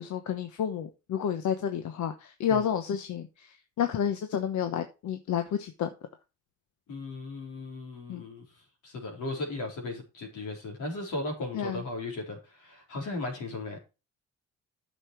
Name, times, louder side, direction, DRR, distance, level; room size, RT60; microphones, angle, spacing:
voice 1, 0.0-5.9 8.1-8.2 11.5-11.8, left 8 dB, 70° left, 7 dB, 1.1 m, -30 dB
voice 2, 6.9-8.4 8.8-13.8, left 2 dB, 90° left, 1 dB, 4.1 m, -36 dB
10.0 x 6.5 x 4.6 m, 0.30 s
cardioid pair, 90°, 30 cm